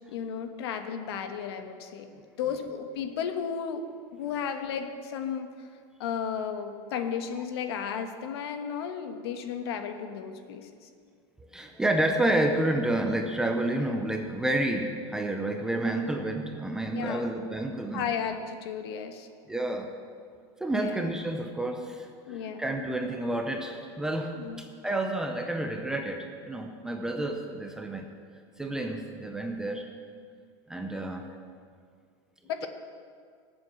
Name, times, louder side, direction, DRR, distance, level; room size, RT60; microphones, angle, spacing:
voice 1, 0.1-2.1 2.4-3.8 4.1-5.5 6.0-10.7 16.9-17.3 17.9-19.3 20.7-21.0 22.3-22.6 24.4-24.6 32.5-32.7, left 7 dB, 65° left, 7 dB, 1.3 m, -34 dB
voice 2, 11.5-18.1 19.5-19.9 20.6-24.4 24.8-28.1 28.6-29.9 30.7-31.2, right 1 dB, 5° right, 3 dB, 0.5 m, -29 dB
18.5 x 7.7 x 6.1 m, 2.1 s
supercardioid pair, 180°, 14 cm